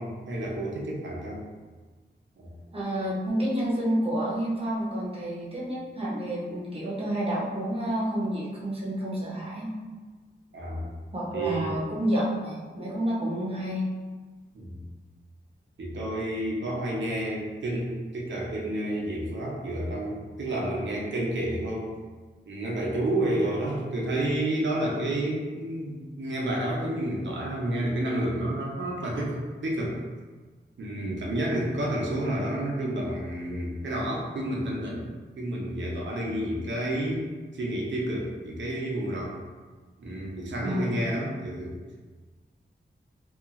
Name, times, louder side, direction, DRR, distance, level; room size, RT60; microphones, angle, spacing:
voice 1, 0.0-1.4 2.4-2.5 10.5-10.9 11.3-11.8 14.5-14.8 15.8-21.9 22.5-30.0 30.8-35.1 35.4-37.3 37.5-39.4 40.0-41.7, right 1 dB, 75° right, -3 dB, 0.7 m, -30 dB
voice 2, 2.7-9.7 11.1-13.9 40.6-41.1, equal, 30° right, -6 dB, 0.7 m, -29 dB
2.8 x 2.4 x 2.4 m, 1.4 s
wide cardioid pair, 120°, 19 cm